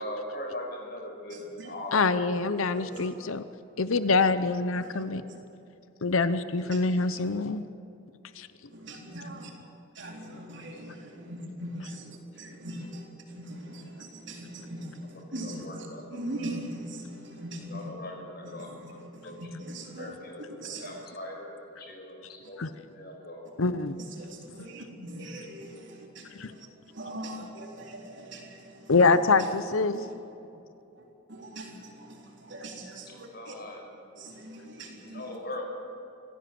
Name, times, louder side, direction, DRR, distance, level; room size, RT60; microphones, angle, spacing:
voice 1, 0.0-1.4 1.6-2.3 15.0-16.6 17.7-19.0 19.2-19.5 19.9-22.6 22.9-23.6 33.3-34.0 34.7-35.6, left 1 dB, 50° left, 1 dB, 5.4 m, -41 dB
voice 2, 1.9-3.4 3.8-5.2 6.0-7.6 8.3-8.5 11.8-11.9 22.6-22.7 23.6-24.0 26.3-26.5 28.9-30.0, left 4 dB, 80° left, 12 dB, 0.8 m, -25 dB
voice 3, 8.7-9.5 10.0-13.1 13.3-14.9 15.3-15.9 16.1-17.8 18.6-18.8 19.3-20.1 20.5-21.1 24.2-26.3 27.0-28.6 31.3-31.7 32.0-32.2 32.5-33.5 34.2-35.2, right 1 dB, 60° right, 0 dB, 3.9 m, -40 dB
25.5 x 16.5 x 7.8 m, 2.9 s
head